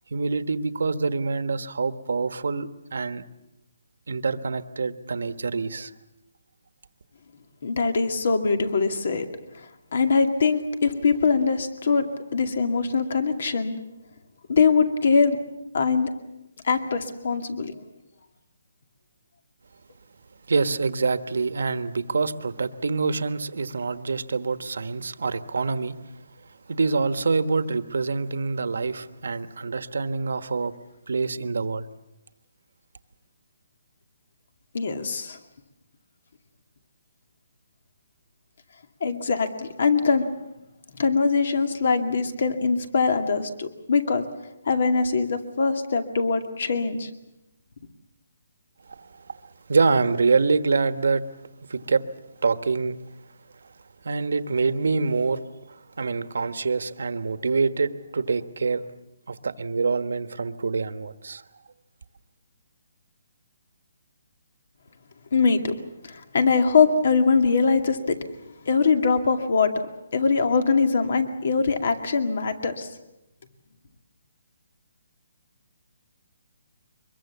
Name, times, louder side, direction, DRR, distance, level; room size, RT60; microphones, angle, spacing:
voice 1, 0.1-3.2 4.1-5.9 20.5-26.0 26.7-30.8 31.1-31.9 48.9-51.2 51.7-52.0 52.4-53.0 54.0-55.4 56.0-58.8 59.3-61.4, right 4 dB, 75° right, 11 dB, 1.3 m, -26 dB
voice 2, 7.6-9.3 9.9-12.1 12.3-13.7 14.5-15.4 15.7-16.1 16.6-17.7 34.7-35.4 39.0-40.3 41.0-44.2 44.7-47.1 65.3-65.7 66.0-68.2 68.7-69.9 70.1-72.9, left 5 dB, 55° left, 7 dB, 2.3 m, -22 dB
24.0 x 22.0 x 7.3 m, 0.92 s
hypercardioid pair, 170°, 0 cm